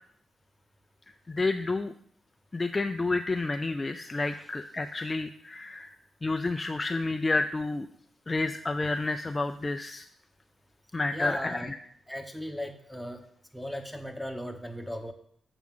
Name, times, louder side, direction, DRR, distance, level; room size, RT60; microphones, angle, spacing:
voice 1, 1.3-1.9 2.5-5.9 6.2-7.9 8.3-10.0 10.9-11.8, left 3 dB, 25° left, 7 dB, 0.4 m, -30 dB
voice 2, 11.1-11.7 12.1-13.2 13.5-15.1, equal, ahead, 5 dB, 1.0 m, -37 dB
7.2 x 5.9 x 3.7 m, 0.64 s
cardioid pair, 70°, 0 cm